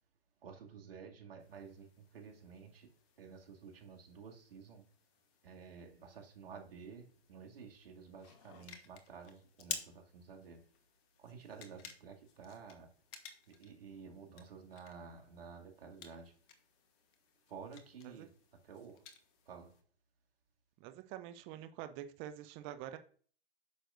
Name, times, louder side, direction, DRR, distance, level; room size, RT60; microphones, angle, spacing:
voice 1, 0.4-4.8 5.4-10.7 11.2-12.9 13.5-16.3 17.5-18.4 18.6-19.1 19.5-19.8, right 6 dB, 60° right, 2.3 m, -52 dB
sound 1, 1.4-19.8, left 7 dB, 25° left, 1.1 m, -54 dB
voice 2, 20.8-23.0, right 11 dB, 20° right, 0.5 m, -46 dB
9.3 x 6.3 x 2.5 m
hypercardioid pair, 130°, 32 cm